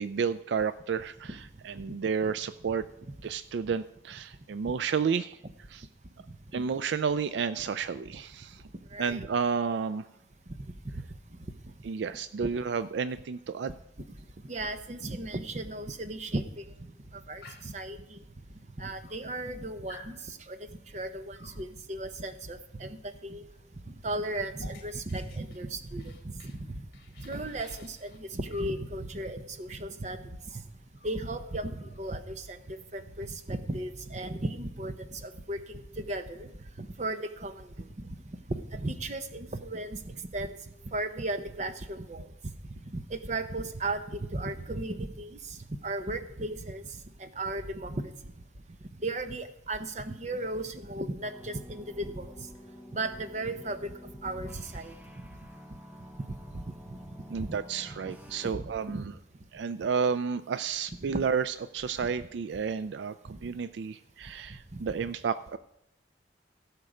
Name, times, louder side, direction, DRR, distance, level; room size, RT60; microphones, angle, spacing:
voice 1, 0.0-1.4 1.6-2.8 3.2-5.4 5.7-5.9 6.5-8.6 9.0-10.1 11.8-13.7 57.3-59.0 59.5-65.6, right 6 dB, 75° right, 14 dB, 0.4 m, -31 dB
voice 2, 8.9-9.3 10.9-11.0 12.4-12.5 14.5-16.6 17.3-18.2 18.8-20.6 20.9-23.4 23.9-26.8 27.2-30.3 31.0-36.5 36.8-38.1 38.5-40.5 40.8-42.2 42.9-46.8 47.2-48.0 49.0-52.3 52.9-53.9 54.2-54.9 56.3-56.6 57.4-57.6 58.6-59.1 61.1-61.2 62.0-62.1 64.7-64.8, right 2 dB, 40° right, 9 dB, 0.8 m, -36 dB
Dog, 17.4-17.8 18.7-18.8 19.0-19.6 19.9-20.2 21.4-21.7 23.5-23.6 23.9-26.6 26.9-28.8 30.1-30.2 30.5-30.7 31.0-32.2, left 2 dB, 55° left, 1.6 m, -53 dB
sound 1, 51.2-58.5, equal, 10° right, 0.9 m, -49 dB
16.0 x 6.6 x 4.9 m, 0.81 s
head